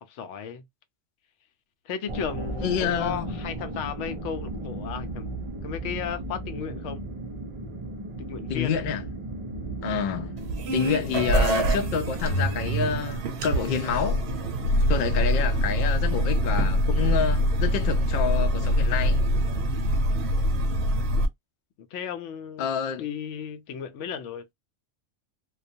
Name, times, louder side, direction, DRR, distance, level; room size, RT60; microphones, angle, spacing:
voice 1, 0.1-0.6 1.9-5.3 5.6-7.0 8.2-8.8 21.9-22.7 23.0-24.5, left 8 dB, 85° left, 0.9 m, -34 dB
sound 1, 2.1-13.0, right 2 dB, 50° right, 0.3 m, -35 dB
voice 2, 2.6-3.4 8.5-9.0 9.8-10.3 10.7-14.2 14.9-19.2 22.6-23.0, left 7 dB, 60° left, 0.5 m, -28 dB
sound 2, 10.4-21.3, equal, 65° right, 0.8 m, -24 dB
2.3 x 2.2 x 2.6 m
omnidirectional pair, 1.2 m